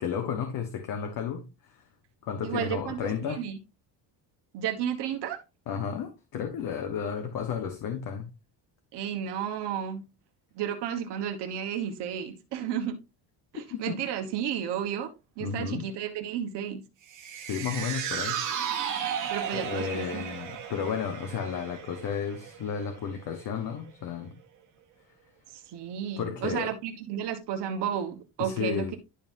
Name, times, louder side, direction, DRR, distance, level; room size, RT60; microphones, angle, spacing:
voice 1, 0.0-1.8 2.2-3.4 5.7-8.3 13.7-14.0 15.4-15.8 17.5-18.4 19.5-24.3 26.2-26.7 28.4-29.0, left 7 dB, 45° left, 1.3 m, -33 dB
voice 2, 2.4-3.6 4.5-5.4 8.9-10.0 10.5-13.0 13.5-15.1 15.4-16.8 19.3-20.2 25.7-29.0, right 9 dB, 60° right, 1.4 m, -32 dB
sound 1, 17.1-23.5 23.9-24.0, right 8 dB, 40° right, 1.8 m, -35 dB
11.5 x 5.5 x 2.7 m
cardioid pair, 180°, 46 cm